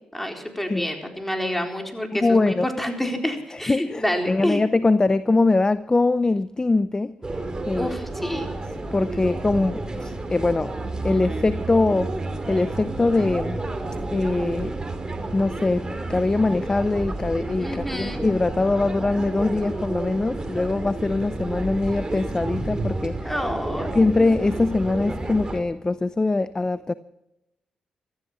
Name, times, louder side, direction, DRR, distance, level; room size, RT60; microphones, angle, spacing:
voice 1, 0.1-4.6 7.7-8.5 9.1-9.2 17.6-18.2 23.2-23.9, equal, 5° left, 4.1 m, -28 dB
voice 2, 2.2-2.7 3.5-7.2 7.7-7.9 8.9-10.8 11.0-12.1 12.5-13.6 14.1-14.8 15.3-23.3 23.9-26.9, left 3 dB, 25° left, 0.6 m, -22 dB
sound 1, 7.2-25.6, right 2 dB, 30° right, 2.7 m, -31 dB
16.0 x 13.5 x 5.9 m
supercardioid pair, 55°, 3 cm